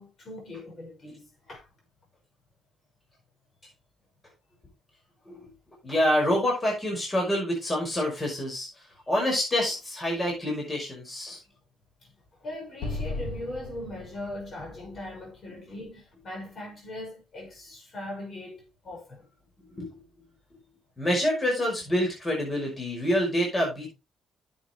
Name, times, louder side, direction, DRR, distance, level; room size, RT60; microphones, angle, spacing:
voice 1, 0.0-1.7 12.0-12.1 12.4-19.2, left 1 dB, 45° left, 6.0 m, -40 dB
voice 2, 5.8-8.7 9.1-11.4 19.7-20.0 21.0-23.9, equal, 25° left, 5.6 m, -27 dB
Explosion, 12.8-16.1, left 3 dB, 80° left, 1.7 m, -37 dB
10.5 x 8.0 x 3.2 m
cardioid pair, 90°, 0 cm